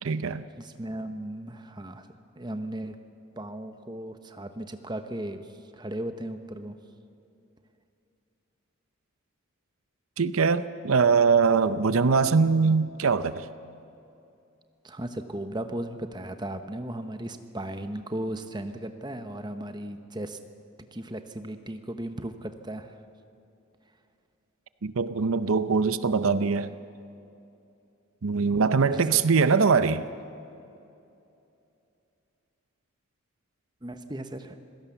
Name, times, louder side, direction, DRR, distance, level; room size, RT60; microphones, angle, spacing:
voice 1, 0.0-0.5 10.2-13.5 24.8-26.7 28.2-30.1, right 5 dB, 80° right, 0.7 m, -22 dB
voice 2, 0.6-2.1 2.4-3.0 3.4-5.5 5.7-6.7 14.8-20.4 20.9-22.9 28.5-29.2 33.8-34.6, right 1 dB, 20° right, 0.9 m, -36 dB
26.5 x 17.0 x 7.1 m
head